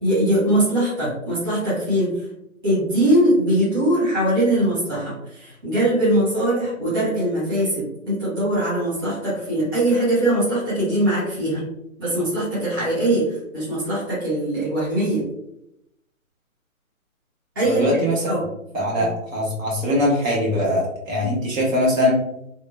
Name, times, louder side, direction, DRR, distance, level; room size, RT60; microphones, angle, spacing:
voice 1, 0.0-2.1 2.6-11.6 12.0-15.2 17.5-18.4 18.9-19.0, right 1 dB, 15° right, -12 dB, 0.7 m, -21 dB
voice 2, 17.6-18.3 18.7-22.2, left 1 dB, 65° right, -4 dB, 1.2 m, -21 dB
2.9 x 2.1 x 2.2 m, 0.82 s
hypercardioid pair, 165°, 42 cm